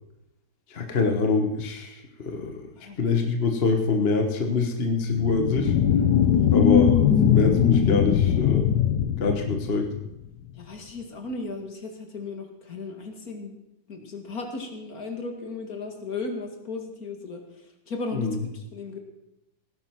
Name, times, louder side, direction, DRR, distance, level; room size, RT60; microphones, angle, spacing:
voice 1, 0.7-2.5 3.0-5.7 6.5-8.7 9.2-9.9 18.1-18.4, left 4 dB, 40° left, 4 dB, 1.4 m, -25 dB
sound 1, 5.1-10.1, left 8 dB, 85° left, 1.5 m, -21 dB
voice 2, 6.2-6.6 10.6-13.6 13.9-19.0, left 3 dB, 60° left, 4 dB, 2.5 m, -36 dB
17.5 x 10.0 x 6.0 m, 0.89 s
omnidirectional pair, 1.7 m